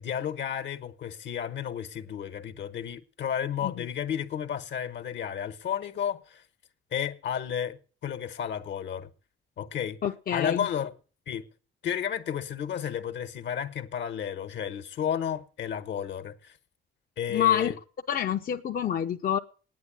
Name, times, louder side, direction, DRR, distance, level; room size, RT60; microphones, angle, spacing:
voice 1, 0.0-6.4 6.9-9.1 9.6-10.0 10.3-10.9 11.3-11.5 11.8-16.6 17.2-17.8, left 9 dB, 65° left, 1.2 m, -32 dB
voice 2, 10.0-10.7 17.3-17.7 18.1-19.4, left 10 dB, 45° left, 0.7 m, -27 dB
9.5 x 8.2 x 9.2 m
cardioid pair, 90°, 20 cm